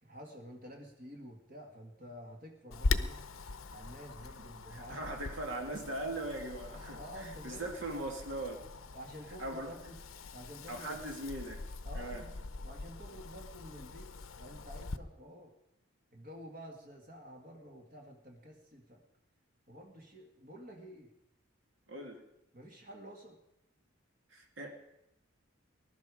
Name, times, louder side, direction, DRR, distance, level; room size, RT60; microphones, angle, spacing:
voice 1, 0.0-3.2 3.7-5.1 6.9-7.7 8.9-10.0 10.3-11.1 11.8-14.1 14.4-15.5 16.1-19.0 19.7-21.1 22.5-23.4, equal, 40° right, 1 dB, 2.0 m, -50 dB
Wind, 2.7-15.0, left 3 dB, 75° left, 0.8 m, -41 dB
voice 2, 4.7-8.6 9.4-9.7 10.7-11.6 11.9-12.2 21.9-22.2 24.3-24.7, right 1 dB, 60° right, 2 dB, 2.3 m, -40 dB
20.5 x 11.5 x 5.0 m, 0.85 s
head